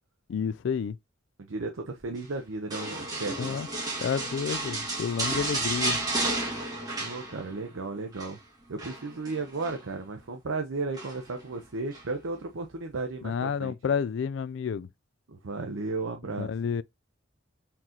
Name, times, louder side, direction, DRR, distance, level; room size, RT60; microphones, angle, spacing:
voice 1, 0.3-1.0 3.4-3.7 4.0-6.0 13.2-14.9 16.4-16.8, left 6 dB, 65° left, 0.3 m, -30 dB
voice 2, 1.4-3.6 7.0-8.4 8.7-13.7 15.3-16.5, right 3 dB, 85° right, 0.7 m, -34 dB
sound 1, 2.7-7.7 8.0-8.3 8.8-9.8 10.9-11.4 11.9-12.1, right 2 dB, 20° right, 1.8 m, -32 dB
4.4 x 3.8 x 2.8 m
head